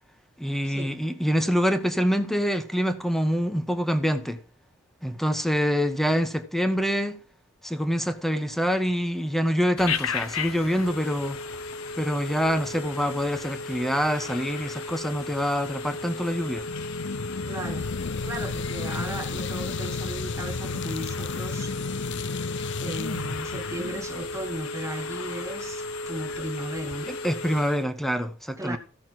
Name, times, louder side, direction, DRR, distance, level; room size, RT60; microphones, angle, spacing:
voice 1, 0.4-4.4 5.0-7.2 7.6-11.4 12.0-16.6 27.2-28.8, equal, ahead, 1.1 m, -25 dB
Telephone, 9.8-27.9, left 3 dB, 85° left, 1.1 m, -35 dB
sound 1, 16.7-24.7, left 4 dB, 60° left, 0.5 m, -33 dB
voice 2, 17.5-17.9 18.2-21.7 22.8-27.2 28.6-28.8, right 1 dB, 15° right, 0.9 m, -36 dB
14.5 x 6.3 x 6.0 m
head